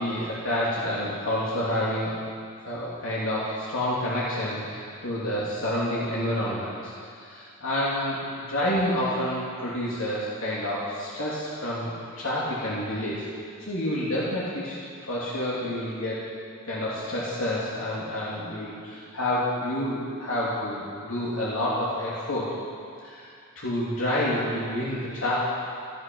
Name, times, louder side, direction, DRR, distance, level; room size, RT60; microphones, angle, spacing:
voice 1, 0.0-2.2 2.6-13.2 13.6-16.2 16.6-22.6 23.0-25.4, left 1 dB, 75° left, -7 dB, 2.6 m, -29 dB
17.0 x 12.0 x 5.4 m, 2.4 s
head